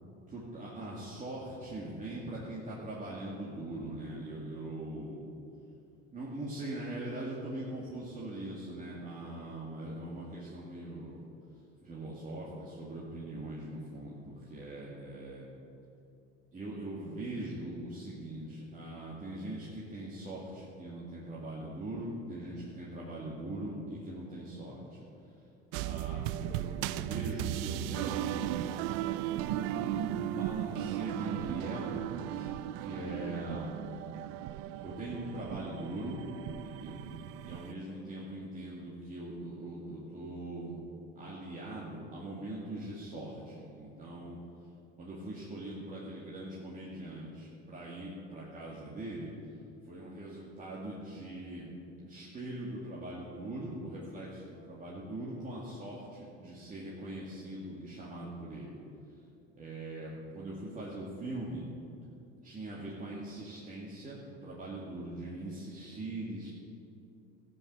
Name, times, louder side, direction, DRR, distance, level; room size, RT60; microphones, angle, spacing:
voice 1, 0.3-5.2 6.1-11.2 11.8-15.4 16.5-25.0 25.8-28.5 29.5-33.7 34.7-37.0 37.4-40.8 41.1-44.4 45.0-49.3 49.8-51.7 52.0-58.8 59.6-61.6 62.4-66.5, right 1 dB, 25° right, -6 dB, 2.2 m, -41 dB
sound 1, 25.7-37.7, right 13 dB, 70° right, 0.5 m, -36 dB
14.0 x 8.1 x 6.3 m, 2.7 s
supercardioid pair, 115°, 32 cm